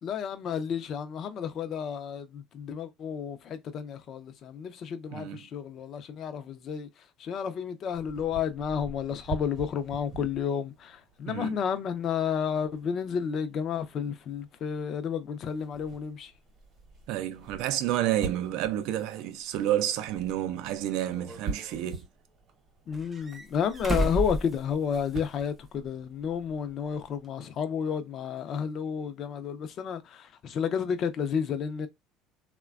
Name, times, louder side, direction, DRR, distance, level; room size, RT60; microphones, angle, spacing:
voice 1, 0.0-6.9 7.2-16.3 22.9-31.9, left 7 dB, 50° left, 0.5 m, -31 dB
voice 2, 5.1-5.4 11.3-11.6 17.1-22.1, right 12 dB, 70° right, 0.4 m, -30 dB
sound 1, 7.9-27.2, right 4 dB, 45° right, 0.9 m, -46 dB
sound 2, 20.1-20.2 21.1-22.0 22.9-25.3 25.6-25.7 27.2-27.3, right 1 dB, 15° right, 0.6 m, -33 dB
3.1 x 2.2 x 2.3 m
supercardioid pair, 110°, 0 cm